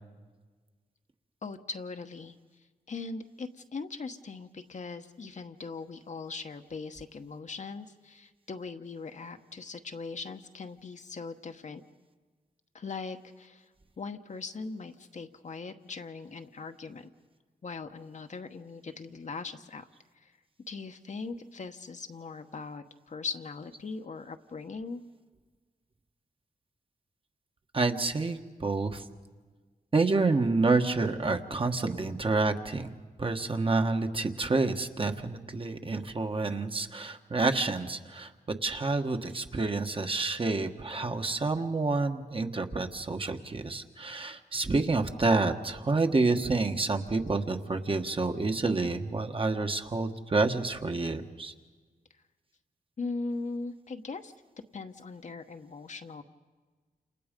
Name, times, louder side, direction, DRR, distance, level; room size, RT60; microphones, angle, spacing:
voice 1, 1.4-2.3 2.9-11.8 12.7-13.6 14.0-17.1 17.6-19.9 20.2-20.3 20.7-25.0 53.0-54.3 54.7-56.2, left 4 dB, 55° left, 7 dB, 1.1 m, -40 dB
voice 2, 27.7-29.0 29.9-32.9 33.2-38.3 38.6-51.5, right 3 dB, 35° right, 5 dB, 1.5 m, -28 dB
29.0 x 27.5 x 5.3 m, 1.4 s
wide cardioid pair, 90°, 15 cm